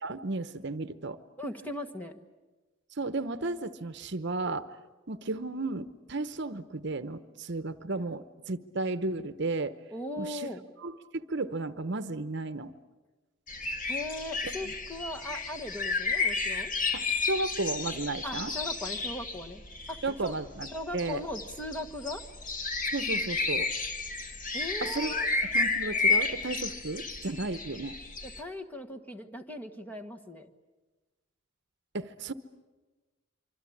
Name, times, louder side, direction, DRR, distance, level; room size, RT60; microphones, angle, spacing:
voice 1, 0.0-1.2 3.0-4.7 5.1-9.8 10.2-10.5 10.8-12.7 14.6-14.7 16.9-18.5 20.0-20.7 20.9-21.2 22.9-23.7 24.8-27.9 31.9-32.3, right 2 dB, 55° right, 12 dB, 0.9 m, -34 dB
voice 2, 1.4-2.2 9.9-10.6 13.9-16.7 18.2-19.6 19.9-20.4 20.7-22.2 24.5-25.3 28.2-30.5, left 1 dB, 10° left, 4 dB, 1.3 m, -38 dB
sound 1, 13.5-28.4, left 3 dB, 40° left, 1.7 m, -32 dB
25.5 x 25.5 x 8.6 m, 1.2 s
head